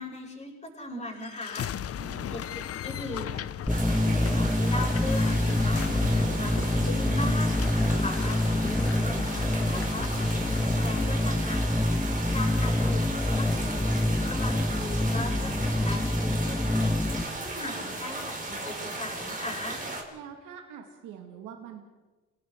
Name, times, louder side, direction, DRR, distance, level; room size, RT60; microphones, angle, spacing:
voice 1, 0.0-19.8, left 2 dB, 20° left, -2 dB, 7.4 m, -39 dB
sound 1, 1.2-11.1, left 10 dB, 50° left, 0.7 m, -38 dB
voice 2, 2.0-2.4 8.1-8.3 20.1-21.8, right 8 dB, 85° right, 3 dB, 2.5 m, -44 dB
sound 2, 3.7-17.2, left 1 dB, 5° left, 1.6 m, -26 dB
sound 3, 3.7-20.0, right 2 dB, 25° right, 4.4 m, -36 dB
30.0 x 18.5 x 4.8 m, 1.2 s
cardioid pair, 90°, 30 cm